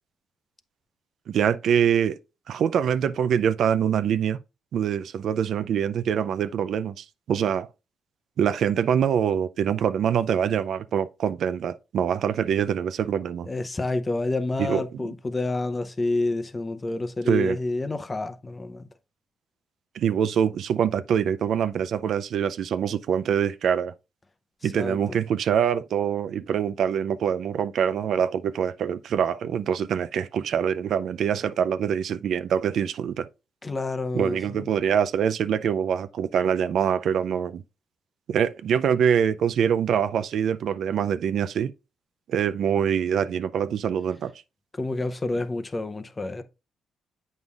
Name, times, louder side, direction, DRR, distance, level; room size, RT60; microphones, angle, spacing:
voice 1, 1.3-2.2 2.5-4.4 4.7-7.7 8.4-13.5 14.6-14.8 17.3-17.6 19.9-23.9 24.6-33.3 34.1-37.6 38.3-41.7 42.3-44.3, right 8 dB, 65° right, 0.4 m, -24 dB
voice 2, 13.4-18.9 24.6-25.2 33.6-34.7 44.7-46.4, left 2 dB, 25° left, 0.7 m, -29 dB
8.0 x 5.4 x 2.4 m
cardioid pair, 90°, 0 cm